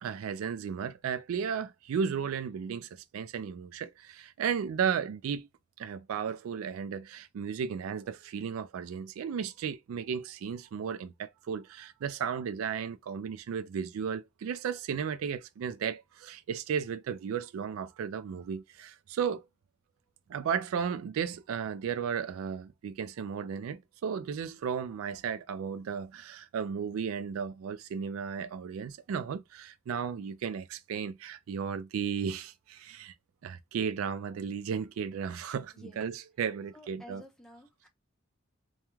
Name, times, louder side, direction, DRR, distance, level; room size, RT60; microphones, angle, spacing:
voice 1, 0.0-5.5 5.8-19.4 20.3-33.1 33.4-37.2, right 7 dB, 85° right, 0.3 m, -34 dB
voice 2, 35.7-36.1 36.7-37.9, left 1 dB, 5° left, 0.6 m, -52 dB
2.3 x 2.2 x 3.0 m
head